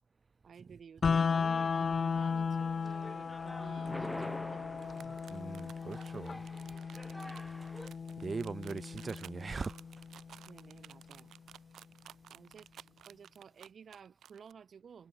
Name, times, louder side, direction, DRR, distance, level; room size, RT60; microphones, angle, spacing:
voice 1, 0.4-5.1 7.1-7.3 10.5-11.3 12.3-15.1, right 7 dB, 50° right, 1.8 m, -54 dB
sound 1, 1.0-11.0, left 5 dB, 40° left, 0.5 m, -36 dB
sound 2, 2.6-7.9, equal, ahead, 1.5 m, -47 dB
sound 3, 4.9-14.5, right 10 dB, 65° right, 2.2 m, -55 dB
voice 2, 5.0-6.5 8.2-9.8, right 4 dB, 30° right, 0.6 m, -40 dB
cardioid pair, 90°, 0 cm